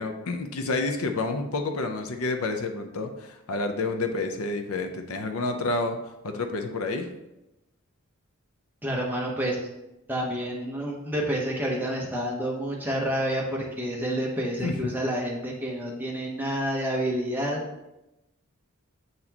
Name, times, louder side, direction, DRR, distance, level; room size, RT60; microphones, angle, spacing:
voice 1, 0.0-6.0 6.2-7.1 14.6-14.9, left 3 dB, 75° left, 6 dB, 0.6 m, -29 dB
voice 2, 8.8-9.6 10.1-17.6, equal, 10° right, -2 dB, 0.9 m, -29 dB
7.9 x 4.1 x 2.9 m, 0.93 s
head